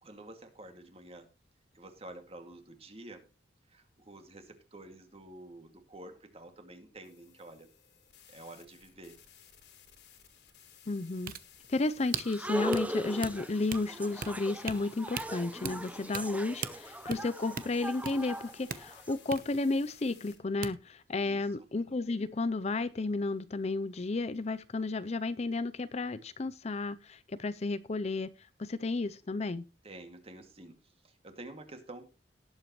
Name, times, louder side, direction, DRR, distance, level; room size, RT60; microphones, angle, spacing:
voice 1, 0.0-1.3 1.7-3.2 3.7-7.7 8.3-9.2 21.1-21.7 29.8-30.8 31.0-32.1, right 1 dB, 30° right, 2.3 m, -49 dB
sound 1, 7.0-20.5, left 9 dB, 65° left, 3.1 m, -58 dB
voice 2, 10.9-11.3 11.7-28.3 28.6-29.6, left 3 dB, 35° left, 0.5 m, -32 dB
sound 2, 11.0-20.4 20.6-20.7, right 6 dB, 50° right, 0.8 m, -41 dB
sound 3, 12.2-19.1, equal, 10° right, 0.7 m, -38 dB
18.0 x 8.0 x 3.1 m
head